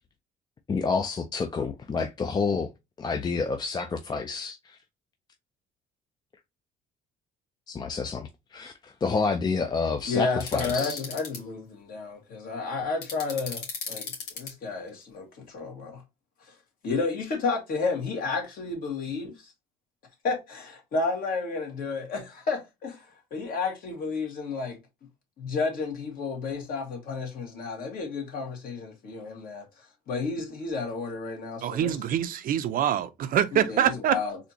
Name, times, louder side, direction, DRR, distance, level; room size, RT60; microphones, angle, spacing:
voice 1, 0.7-2.7 3.0-4.5 7.7-11.0, left 4 dB, 25° left, 0.4 m, -29 dB
voice 2, 10.1-16.0 16.8-19.5 20.2-24.8 25.4-29.7 30.1-32.0 33.7-34.4, left 4 dB, 60° left, 1.8 m, -31 dB
sound 1, 10.4-11.4 13.0-14.5, left 5 dB, 75° left, 1.6 m, -36 dB
voice 3, 31.6-34.2, right 10 dB, 55° right, 0.5 m, -25 dB
4.2 x 2.8 x 2.8 m
cardioid pair, 110°, 17 cm